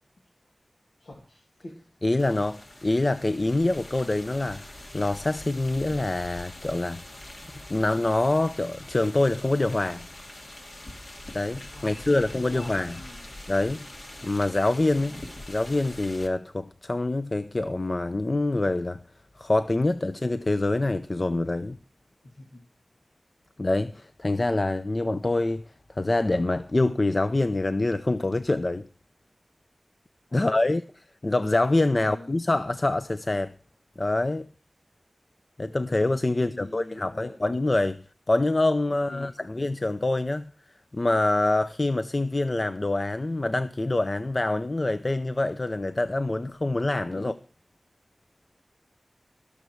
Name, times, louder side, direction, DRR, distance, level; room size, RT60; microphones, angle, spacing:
voice 1, 1.0-1.8 11.7-13.3 22.2-22.6 30.3-30.7 31.9-32.3 36.3-37.4 38.9-39.7 47.1-47.4, left 1 dB, 90° left, 2.4 m, -45 dB
voice 2, 2.0-4.6 4.9-7.0 7.7-10.1 11.3-13.0 13.5-13.9 14.2-15.2 15.5-19.0 19.4-21.8 23.6-25.6 26.0-28.9 30.3-33.5 34.0-34.5 35.6-40.5 40.9-47.3, left 2 dB, 45° left, 0.6 m, -25 dB
sound 1, 2.2-16.3, left 1 dB, 65° left, 2.3 m, -44 dB
19.5 x 6.7 x 4.7 m
cardioid pair, 40°, 0 cm